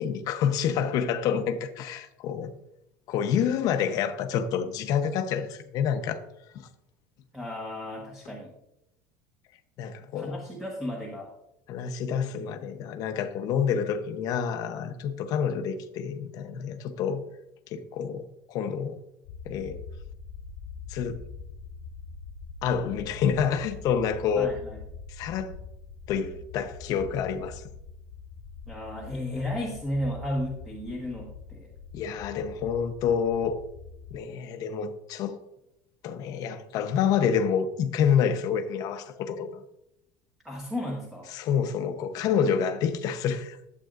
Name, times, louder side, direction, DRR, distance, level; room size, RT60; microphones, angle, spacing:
voice 1, 0.0-2.5 3.1-6.2 6.5-6.7 9.8-10.4 11.7-17.2 17.7-19.0 19.4-19.8 20.9-21.2 22.6-24.5 25.1-25.5 26.1-27.6 31.9-33.6 34.1-35.4 36.0-39.6 41.3-43.6, left 7 dB, 45° left, 0.8 m, -28 dB
voice 2, 7.3-8.5 10.1-11.3 24.4-24.8 28.7-31.7 40.4-41.3, left 1 dB, 5° right, 1.3 m, -34 dB
sound 1, 19.2-34.2, left 5 dB, 70° left, 1.1 m, -44 dB
12.0 x 8.3 x 2.5 m
cardioid pair, 165°, 9 cm